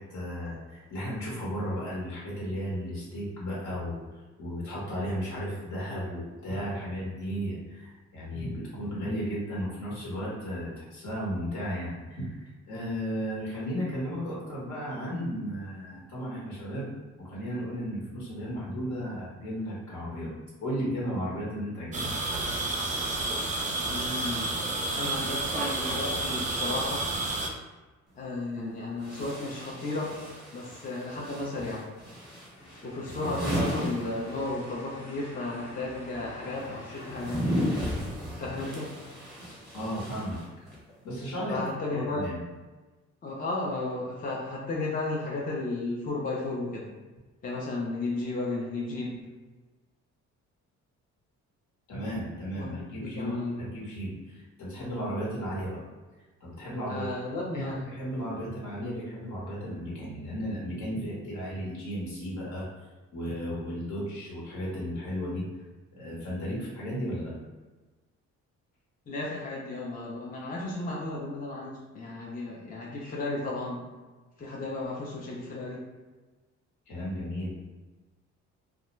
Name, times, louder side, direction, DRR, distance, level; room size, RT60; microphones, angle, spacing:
voice 1, 0.0-4.0 4.4-20.3 20.6-22.1 39.7-40.4 41.0-42.4 51.9-55.8 56.4-57.1 57.5-62.7 63.1-65.5 66.0-67.3 76.9-77.5, equal, 70° left, -6 dB, 1.2 m, -34 dB
sound 1, 21.9-27.5, right 2 dB, 25° right, 0.5 m, -30 dB
voice 2, 23.9-24.6 24.9-27.1 28.2-30.2 30.5-31.9 32.8-37.6 38.4-39.0 41.5-42.3 43.2-46.9 47.4-49.2 52.6-53.7 56.9-58.0 69.1-73.9 74.4-75.9, left 2 dB, 30° left, -3 dB, 0.5 m, -34 dB
sound 2, 28.1-28.2 29.0-34.8 35.0-40.9, equal, ahead, 1.0 m, -35 dB
sound 3, 32.6-37.9, left 1 dB, 55° left, 0.9 m, -47 dB
2.3 x 2.1 x 3.0 m, 1.2 s
cardioid pair, 90°, 30 cm